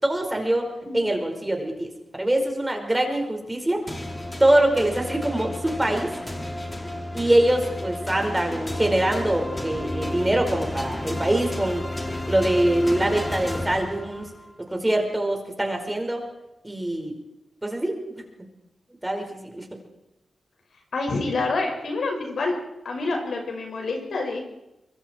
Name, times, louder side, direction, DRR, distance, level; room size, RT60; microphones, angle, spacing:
voice 1, 0.0-1.9 2.1-3.8 4.4-6.1 7.1-11.9 12.3-14.3 14.7-16.2 16.6-17.1 17.6-18.0 19.0-19.6, right 1 dB, 15° right, 3 dB, 5.1 m, -23 dB
sound 1, 3.9-14.5, left 1 dB, 20° left, 2.9 m, -32 dB
voice 2, 20.9-22.5 22.8-24.4, left 3 dB, 70° left, 2 dB, 5.9 m, -27 dB
24.5 x 23.5 x 4.6 m, 0.92 s
cardioid pair, 70°, 0 cm